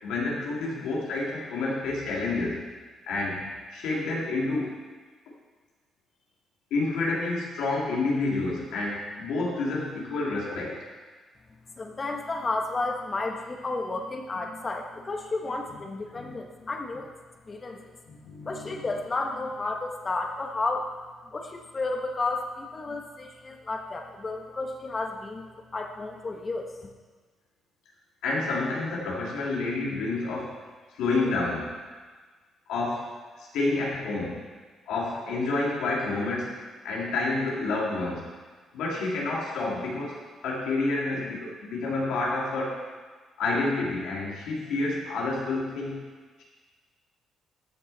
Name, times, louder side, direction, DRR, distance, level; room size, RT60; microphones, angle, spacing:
voice 1, 0.0-2.6 3.1-4.8 6.7-10.8 16.1-16.3 18.1-18.9 28.2-30.6 30.9-31.7 32.7-33.1 33.4-34.4 34.9-36.6 36.8-38.2 38.7-42.8 43.4-46.0, left 3 dB, 90° left, -4 dB, 2.6 m, -29 dB
voice 2, 11.8-17.1 17.4-18.0 18.4-20.9 21.2-26.7, left 3 dB, 30° left, 2 dB, 1.4 m, -32 dB
13.5 x 6.8 x 4.2 m, 1.4 s
cardioid pair, 90°, 0 cm